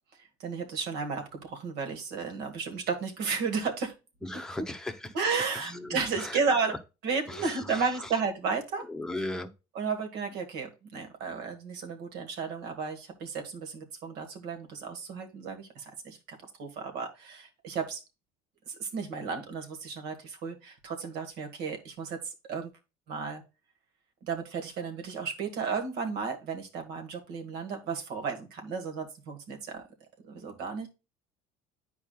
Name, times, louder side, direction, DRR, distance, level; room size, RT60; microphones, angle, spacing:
voice 1, 0.2-3.9 4.3-4.4 5.1-6.8 7.0-8.8 9.7-18.0 18.7-22.7 23.1-23.4 24.2-29.8 30.3-30.9, right 5 dB, 75° right, 1.7 m, -33 dB
voice 2, 4.2-5.1 5.6-6.4 7.3-7.8 8.9-9.5, left 1 dB, 5° left, 0.8 m, -37 dB
9.9 x 4.7 x 2.4 m
cardioid pair, 115°, 17 cm